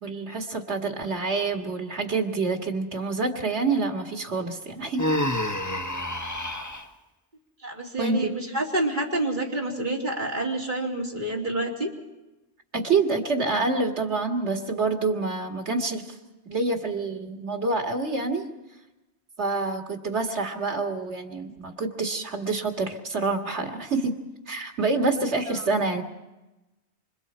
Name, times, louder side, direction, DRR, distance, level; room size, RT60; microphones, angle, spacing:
voice 1, 0.0-5.1 8.0-8.3 12.7-16.2 16.5-18.5 19.4-24.1 24.5-26.0, right 3 dB, 80° right, 3 dB, 2.5 m, -27 dB
Human voice, 5.0-6.9, left 1 dB, 15° left, 1.2 m, -28 dB
voice 2, 7.6-11.9, right 1 dB, 45° right, -2 dB, 3.5 m, -28 dB
28.0 x 26.5 x 4.4 m, 1.0 s
omnidirectional pair, 1.1 m